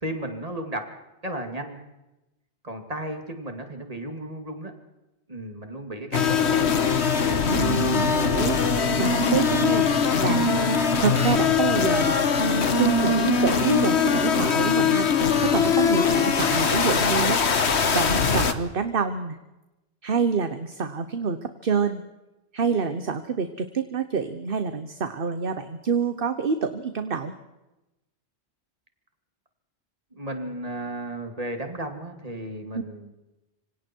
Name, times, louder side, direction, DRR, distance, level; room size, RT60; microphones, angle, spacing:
voice 1, 0.0-0.9 1.2-1.8 2.6-4.7 5.3-6.7 30.1-33.1, right 1 dB, 35° right, 5 dB, 2.9 m, -34 dB
sound 1, 6.1-18.5, left 5 dB, 75° left, 1.6 m, -22 dB
voice 2, 7.5-8.6 9.0-9.9 10.2-10.5 11.0-15.1 15.4-17.4 17.9-19.4 20.0-22.0 22.5-27.3, right 5 dB, 55° right, 9 dB, 1.3 m, -27 dB
26.5 x 25.0 x 4.6 m, 0.98 s
omnidirectional pair, 1.1 m